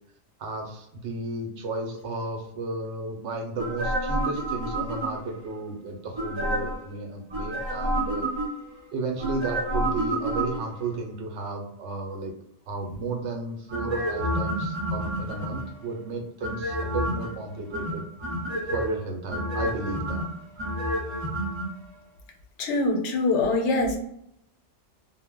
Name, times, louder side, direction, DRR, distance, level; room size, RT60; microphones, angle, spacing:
voice 1, 0.4-8.3 8.9-12.3 12.7-18.0 18.7-20.3, right 3 dB, 80° right, 2 dB, 0.9 m, -33 dB
sound 1, 3.6-5.4 6.1-6.9 7.3-8.7 9.2-10.9 13.7-15.8 16.4-17.3 17.7-18.9 19.3-21.7 21.9-22.0, right 1 dB, 30° right, 0.6 m, -29 dB
voice 2, 22.6-24.0, left 2 dB, 80° left, 3 dB, 0.9 m, -24 dB
2.1 x 2.1 x 3.4 m, 0.75 s
omnidirectional pair, 1.2 m